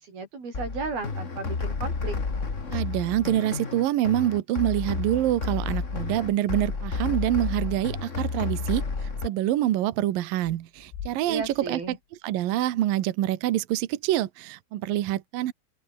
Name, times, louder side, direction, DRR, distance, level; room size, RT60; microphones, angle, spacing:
voice 1, 0.0-2.2 11.3-12.0, right 4 dB, 50° right, 9.6 m, -34 dB
sound 1, 0.5-9.3, left 4 dB, 55° left, 0.8 m, -31 dB
voice 2, 2.7-12.0 12.2-15.5, right 13 dB, 70° right, 2.2 m, -26 dB
sound 2, 6.4-6.7 7.0-7.1 10.3-12.4, left 8 dB, 85° left, 6.2 m, -45 dB
open air
omnidirectional pair, 5.6 m